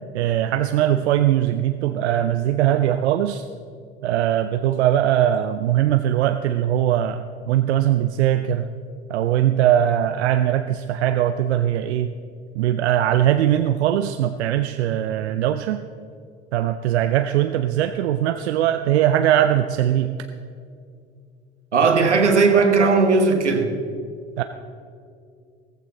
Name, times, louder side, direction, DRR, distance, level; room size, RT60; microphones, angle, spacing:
voice 1, 0.1-3.5 4.0-8.7 9.1-12.1 12.6-15.8 16.5-20.2 24.4-24.5, right 11 dB, 75° right, 9 dB, 0.6 m, -20 dB
voice 2, 21.7-23.7, right 4 dB, 90° right, 6 dB, 1.2 m, -17 dB
15.5 x 14.5 x 3.9 m, 2.3 s
figure-of-eight pair, 70°, 34 cm